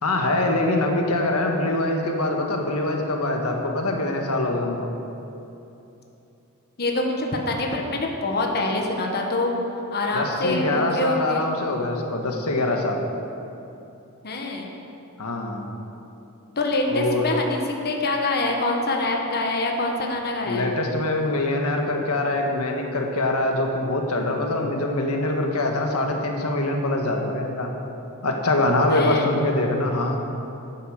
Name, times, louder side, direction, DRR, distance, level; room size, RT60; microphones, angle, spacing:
voice 1, 0.0-4.9 10.1-13.0 15.2-15.7 16.9-17.3 20.4-27.7 28.2-30.2, left 2 dB, 80° left, 2 dB, 1.5 m, -24 dB
voice 2, 6.8-9.5 9.9-11.5 14.2-14.7 16.6-20.7 28.9-29.3, left 2 dB, 45° left, 1 dB, 1.3 m, -25 dB
10.0 x 9.3 x 6.6 m, 2.9 s
head